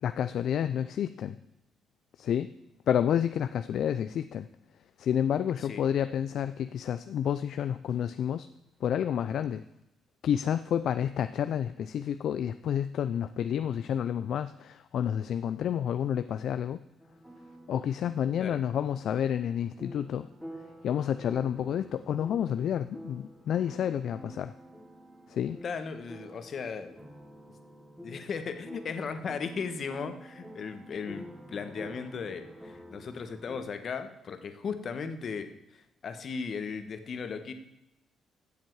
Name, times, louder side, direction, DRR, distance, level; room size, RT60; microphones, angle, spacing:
voice 1, 0.0-1.4 2.2-2.5 2.9-4.5 5.0-8.5 8.8-9.6 10.2-16.8 17.7-20.3 20.8-24.5 25.3-25.6, left 9 dB, 70° left, 11 dB, 0.4 m, -29 dB
sound 1, 17.0-33.6, equal, 5° right, 2.7 m, -49 dB
voice 2, 25.6-27.0 28.0-37.5, left 5 dB, 55° left, 8 dB, 1.4 m, -37 dB
15.5 x 7.4 x 4.7 m, 0.85 s
cardioid pair, 90°, 0 cm